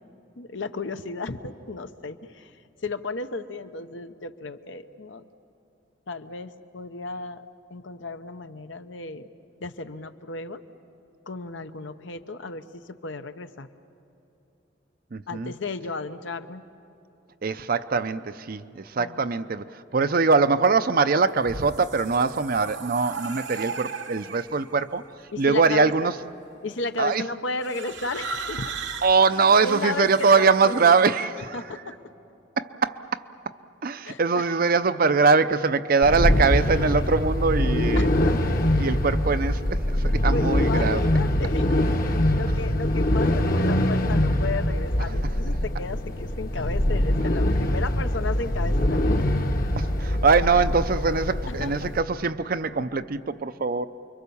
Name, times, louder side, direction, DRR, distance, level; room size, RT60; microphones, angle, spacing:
voice 1, 0.4-2.6 2.8-5.3 6.1-7.4 7.7-9.3 9.6-10.6 11.3-13.7 15.3-16.6 19.0-19.3 25.3-26.1 26.6-28.7 29.6-31.1 31.4-31.9 34.0-34.4 38.0-38.5 40.3-49.3 51.5-51.9, left 3 dB, 75° left, 9 dB, 0.9 m, -34 dB
voice 2, 15.1-15.5 17.4-25.0 25.4-26.1 27.0-27.2 29.0-31.6 32.6-33.2 33.8-38.1 38.8-41.1 42.1-42.2 49.8-53.9, right 4 dB, 50° right, 12 dB, 0.6 m, -22 dB
sound 1, 21.4-24.7 25.6-26.0 27.6-31.2, right 5 dB, 65° right, 1.1 m, -37 dB
sound 2, 36.0-52.0, left 1 dB, 45° left, 1.1 m, -23 dB
29.5 x 23.0 x 7.0 m, 2.8 s
head